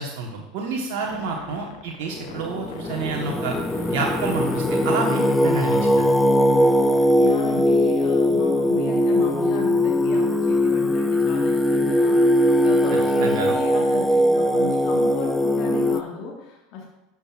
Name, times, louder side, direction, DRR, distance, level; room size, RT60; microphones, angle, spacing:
voice 1, 0.0-3.6 3.9-6.0 13.2-13.5, right 4 dB, 60° right, 0 dB, 1.1 m, -29 dB
sound 1, 1.0-7.7, left 8 dB, 70° left, 0.7 m, -41 dB
voice 2, 1.0-1.4 7.2-16.9, left 4 dB, 55° left, -1 dB, 1.4 m, -35 dB
Singing, 2.2-16.0, left 1 dB, 5° left, 0.6 m, -20 dB
12.0 x 6.0 x 2.4 m, 0.90 s
hypercardioid pair, 80°, 0 cm